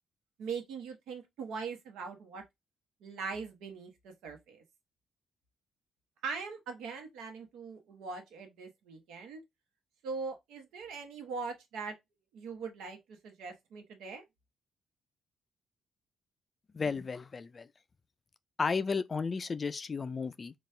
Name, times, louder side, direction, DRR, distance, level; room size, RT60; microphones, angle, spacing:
voice 1, 0.4-2.4 3.0-4.6 6.2-9.4 10.0-11.9 12.3-14.2, right 5 dB, 90° right, 1.0 m, -41 dB
voice 2, 16.7-17.7 18.6-20.5, left 5 dB, 35° left, 0.3 m, -33 dB
4.1 x 2.3 x 3.2 m
cardioid pair, 90°, 0 cm